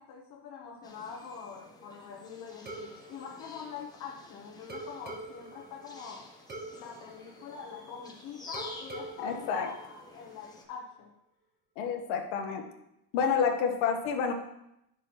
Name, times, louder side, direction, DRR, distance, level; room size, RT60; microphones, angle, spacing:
voice 1, 0.0-6.3 6.7-11.1 11.8-12.0, left 6 dB, 45° left, -1 dB, 1.0 m, -44 dB
sound 1, 0.8-10.7, left 2 dB, 10° left, 0.9 m, -51 dB
sound 2, 2.7-4.2 4.7-8.1 8.5-10.5, right 2 dB, 20° right, 1.0 m, -45 dB
voice 2, 9.2-9.7 11.8-12.6 13.1-14.3, left 6 dB, 75° left, 4 dB, 1.3 m, -29 dB
10.0 x 6.1 x 3.0 m, 0.84 s
cardioid pair, 140°, 44 cm